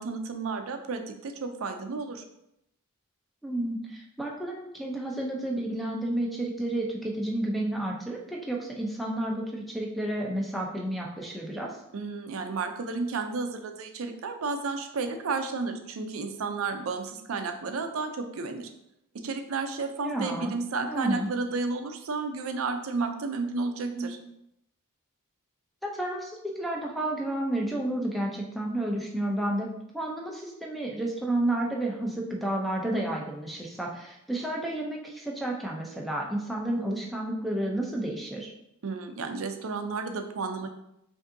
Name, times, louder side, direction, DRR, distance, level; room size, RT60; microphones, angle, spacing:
voice 1, 0.0-2.2 11.9-18.7 19.1-24.2 38.8-40.7, right 4 dB, 65° right, 6 dB, 0.5 m, -32 dB
voice 2, 3.4-11.7 20.0-20.5 20.9-21.3 23.9-24.1 25.8-29.7 29.9-38.5, right 1 dB, ahead, -1 dB, 0.5 m, -31 dB
5.1 x 2.7 x 2.6 m, 0.81 s
head